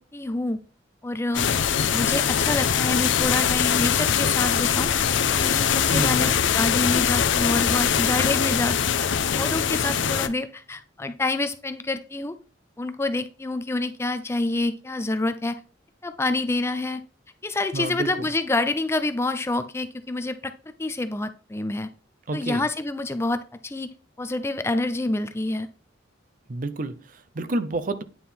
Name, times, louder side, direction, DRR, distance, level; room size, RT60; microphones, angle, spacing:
voice 1, 0.1-0.6 1.0-1.5 1.9-4.9 5.3-6.3 6.5-8.8 9.4-12.4 12.8-15.6 16.0-17.0 17.4-20.5 20.8-21.9 22.3-23.9 24.2-25.7, left 2 dB, 15° left, 0.4 m, -27 dB
sound 1, 1.3-10.3, left 8 dB, 80° left, 0.6 m, -22 dB
voice 2, 5.9-6.4 17.7-18.1 22.3-22.6 26.5-28.0, right 2 dB, 45° right, 0.5 m, -29 dB
9.3 x 4.3 x 3.5 m
head